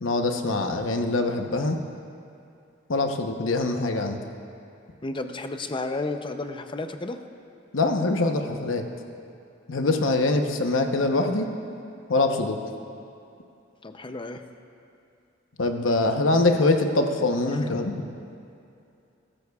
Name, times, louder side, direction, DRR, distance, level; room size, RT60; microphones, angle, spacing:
voice 1, 0.0-1.8 2.9-4.2 7.7-8.8 9.7-11.5 12.1-12.6 15.6-18.0, left 2 dB, 85° left, 4 dB, 0.9 m, -23 dB
voice 2, 5.0-7.2 13.8-14.4 17.5-17.7, left 2 dB, 25° left, 7 dB, 0.6 m, -32 dB
22.0 x 13.5 x 2.4 m, 2.6 s
head